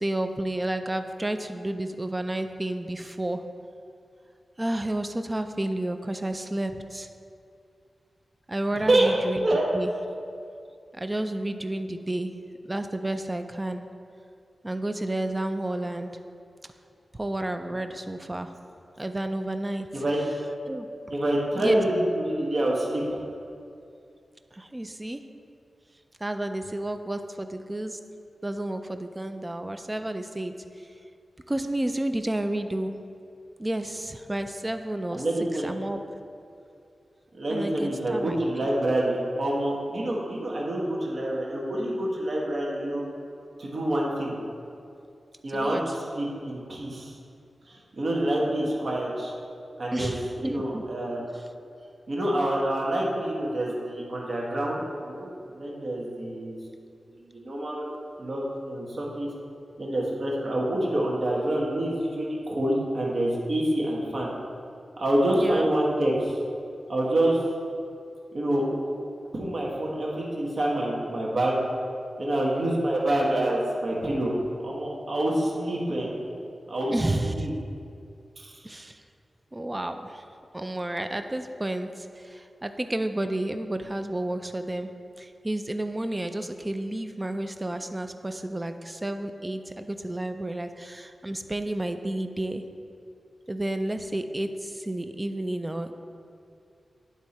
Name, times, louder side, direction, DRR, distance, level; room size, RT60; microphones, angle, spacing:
voice 1, 0.0-3.4 4.6-7.1 8.5-9.5 9.7-9.9 10.9-12.3 12.6-13.8 14.6-16.1 17.1-18.5 19.0-19.9 20.7-21.2 21.6-21.8 24.5-25.2 26.2-28.0 28.4-30.6 31.5-33.0 33.6-36.0 37.5-38.7 45.5-45.8 49.9-50.8 65.4-65.7 76.9-77.5 78.6-79.0 79.5-80.2 80.5-84.9 85.2-92.6 93.5-95.9, right 1 dB, 15° right, 7 dB, 0.4 m, -31 dB
voice 2, 8.7-9.1 9.4-9.6 19.9-20.2 21.1-23.2 35.1-35.8 37.3-43.0 43.6-44.4 45.4-47.2 47.7-49.3 49.8-51.2 52.1-56.6 57.1-59.3 59.8-64.3 65.0-66.4 66.9-67.4 68.3-68.6 69.3-71.6 72.2-74.3 74.6-76.1 76.7-76.9 77.2-77.5 78.4-78.6, right 1 dB, 55° right, -4 dB, 1.3 m, -27 dB
9.7 x 3.6 x 4.2 m, 2.4 s
wide cardioid pair, 125°, 0 cm